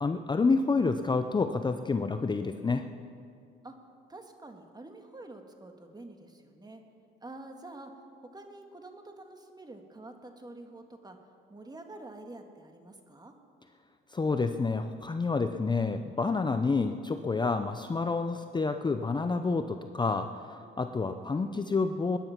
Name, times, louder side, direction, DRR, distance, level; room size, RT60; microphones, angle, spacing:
voice 1, 0.0-2.8 14.1-20.4 20.8-22.2, left 4 dB, 20° left, 8 dB, 0.6 m, -28 dB
voice 2, 4.1-6.8 7.2-7.9 8.2-11.2 11.5-13.3, right 2 dB, 20° right, 5 dB, 1.7 m, -47 dB
21.0 x 10.0 x 5.8 m, 2.4 s
cardioid pair, 90°, 20 cm